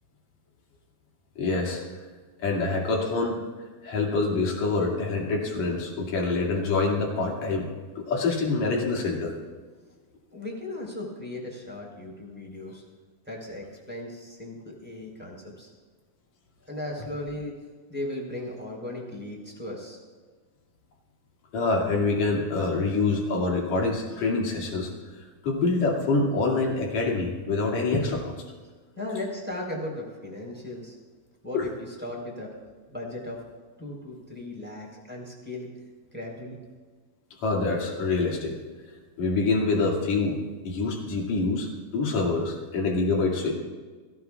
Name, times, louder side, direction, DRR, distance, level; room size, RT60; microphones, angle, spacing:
voice 1, 1.4-1.8 2.4-3.4 3.8-7.7 8.0-9.4 21.5-24.9 25.4-28.4 31.5-31.7 37.4-38.6 39.2-40.4 40.7-41.7 41.9-43.5, left 3 dB, 50° left, -1 dB, 3.5 m, -26 dB
voice 2, 10.3-12.8 13.2-15.7 16.7-17.6 17.9-20.0 29.0-30.9 31.4-32.5 32.9-33.4 33.8-35.7 36.1-36.6, left 1 dB, 5° right, -2 dB, 3.7 m, -37 dB
23.5 x 16.5 x 2.5 m, 1.4 s
omnidirectional pair, 4.5 m